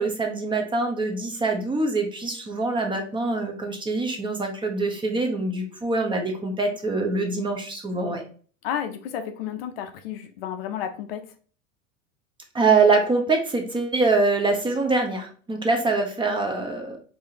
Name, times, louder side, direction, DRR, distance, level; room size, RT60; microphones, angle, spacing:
voice 1, 0.0-8.2 12.5-17.0, right 3 dB, 10° right, 4 dB, 0.6 m, -24 dB
voice 2, 8.6-11.3, left 9 dB, 50° left, 7 dB, 0.5 m, -32 dB
4.8 x 2.8 x 2.7 m, 0.41 s
figure-of-eight pair, 85°, 40 cm